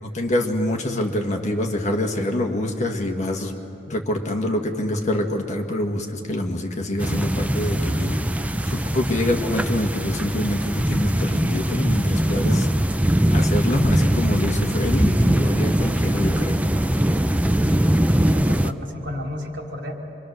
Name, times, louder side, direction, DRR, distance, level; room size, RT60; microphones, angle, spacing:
voice 1, 0.0-3.5 3.9-8.2 8.7-12.7 13.3-16.6, left 1 dB, 40° left, 2 dB, 1.7 m, -25 dB
sound 1, 7.0-18.7, right 1 dB, 10° right, 0.4 m, -21 dB
voice 2, 18.2-19.9, left 1 dB, 75° right, 0 dB, 3.5 m, -32 dB
26.5 x 23.5 x 6.6 m, 2.9 s
head